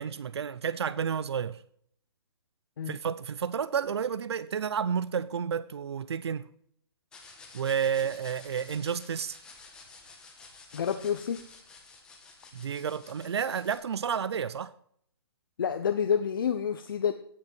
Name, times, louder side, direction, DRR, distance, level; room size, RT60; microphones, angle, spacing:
voice 1, 0.0-1.6 2.9-6.5 7.5-9.4 12.5-14.7, right 7 dB, 90° right, 0.6 m, -31 dB
sound 1, 7.1-13.7, left 4 dB, 5° left, 1.3 m, -51 dB
voice 2, 10.7-11.4 15.6-17.1, left 7 dB, 55° left, 0.9 m, -28 dB
16.5 x 5.9 x 4.6 m
hypercardioid pair, 175°, 13 cm